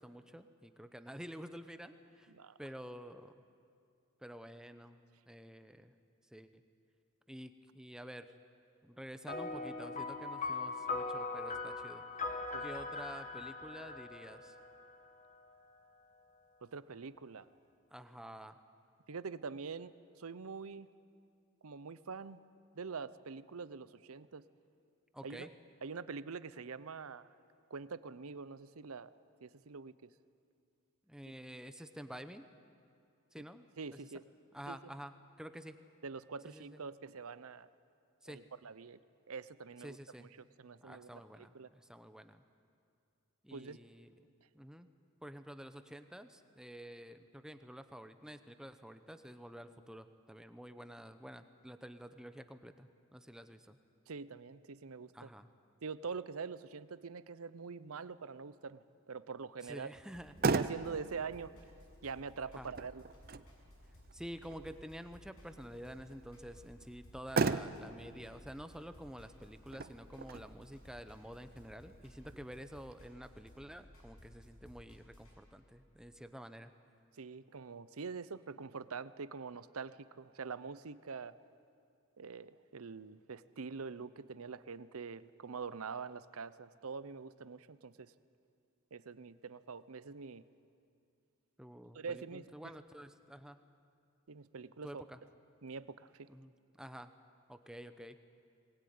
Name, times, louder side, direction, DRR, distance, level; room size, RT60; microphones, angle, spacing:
voice 1, 0.0-2.3 2.6-3.4 4.2-5.0 5.3-5.9 6.3-6.5 7.3-8.3 8.8-12.0 12.6-14.6 17.9-18.6 25.1-25.5 31.1-32.5 33.3-33.7 33.9-34.0 34.5-35.8 36.5-36.8 38.2-38.4 39.8-40.3 40.8-42.4 43.4-44.1 44.5-44.9 45.2-53.8 55.1-55.5 59.6-60.3 62.5-62.7 64.1-76.7 91.6-93.6 94.8-95.2 96.3-96.5 96.8-97.1 97.5-98.2, equal, 5° right, 9 dB, 0.7 m, -49 dB
voice 2, 2.3-2.6 12.5-12.7 16.6-17.5 19.1-20.9 21.6-22.4 22.7-24.4 25.2-25.5 25.8-27.3 27.7-29.1 29.4-30.1 31.3-31.4 33.8-34.2 34.7-34.8 36.0-37.7 38.3-39.0 39.3-40.3 40.6-41.7 43.5-43.8 54.1-55.3 55.8-59.9 60.5-61.5 62.0-63.0 77.2-81.3 82.2-88.1 88.9-90.4 91.9-92.5 94.3-95.0 95.6-96.3, right 5 dB, 85° right, 15 dB, 0.7 m, -45 dB
sound 1, 9.3-15.0, left 3 dB, 35° left, 1.6 m, -40 dB
Motor vehicle (road), 60.0-73.0, right 4 dB, 45° right, 0.6 m, -40 dB
sound 2, 60.1-75.4, equal, 85° left, 7.5 m, -59 dB
21.5 x 19.5 x 9.6 m, 2.5 s
head